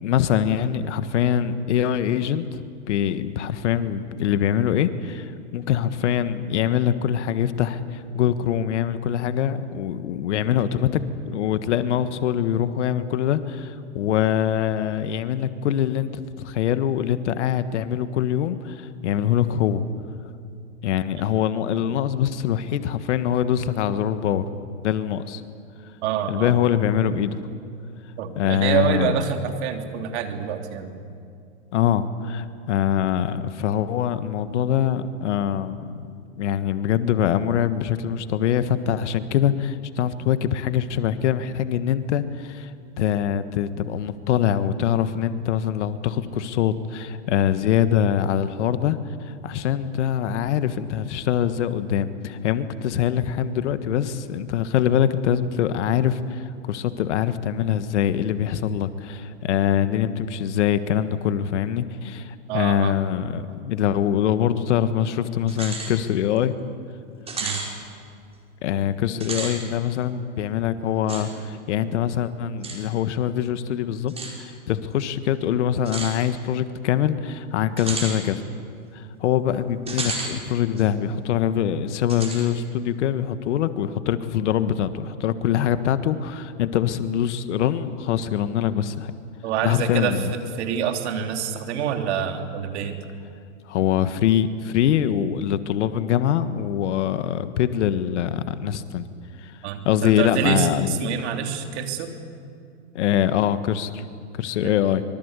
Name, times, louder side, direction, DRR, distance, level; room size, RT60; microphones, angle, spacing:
voice 1, 0.0-19.8 20.8-24.4 24.8-25.4 26.3-27.4 28.4-29.2 31.7-36.1 36.4-42.7 43.0-66.5 68.6-74.1 74.4-78.4 78.9-89.1 89.6-90.3 93.7-99.1 99.4-99.6 99.8-101.0 102.9-104.0 104.3-105.0, left 10 dB, 65° left, 12 dB, 1.6 m, -23 dB
voice 2, 26.0-26.6 28.2-30.9 62.5-63.0 67.4-67.6 89.4-93.0 99.6-102.1 104.6-104.7, right 8 dB, 60° right, 5 dB, 3.4 m, -26 dB
sound 1, 65.5-65.9 66.4-66.5 67.3-67.7 69.1-69.6 71.1-71.2 72.6-72.8 74.1-74.3 75.9-76.1 77.8-78.2 79.9-80.3 80.8-80.9 82.1-82.5, right 3 dB, 15° right, 5.3 m, -31 dB
24.5 x 23.5 x 8.3 m, 2.4 s
hypercardioid pair, 120°, 38 cm